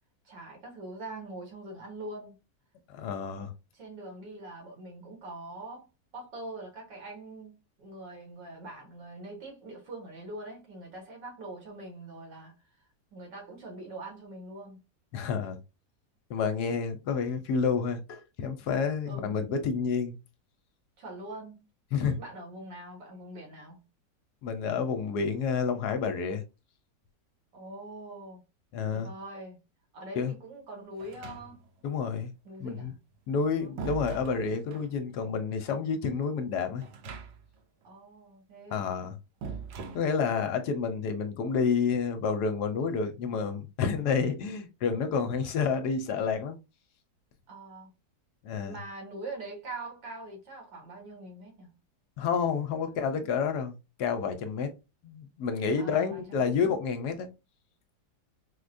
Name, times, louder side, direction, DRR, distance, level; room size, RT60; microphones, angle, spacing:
voice 1, 0.3-2.4 3.7-5.9 6.1-12.5 13.1-14.8 19.1-19.4 21.0-21.7 22.2-23.9 27.5-28.4 28.9-29.6 29.9-31.7 32.5-33.0 33.6-33.8 37.8-38.9 47.5-47.9 48.6-51.8 55.8-56.5, right 2 dB, 90° right, 1.9 m, -43 dB
voice 2, 2.9-3.5 15.1-15.6 16.3-20.2 21.9-22.2 24.4-26.4 28.7-29.1 30.2-30.3 31.8-32.3 32.6-32.9 33.3-36.9 38.7-39.2 39.9-46.6 48.4-48.8 52.2-54.7 55.0-57.3, left 5 dB, 75° left, 1.1 m, -29 dB
sound 1, 31.0-31.8 33.1-34.9 36.8-37.6 37.9-38.0 39.4-40.5, right 5 dB, 70° right, 1.2 m, -42 dB
4.6 x 2.2 x 2.5 m
omnidirectional pair, 1.9 m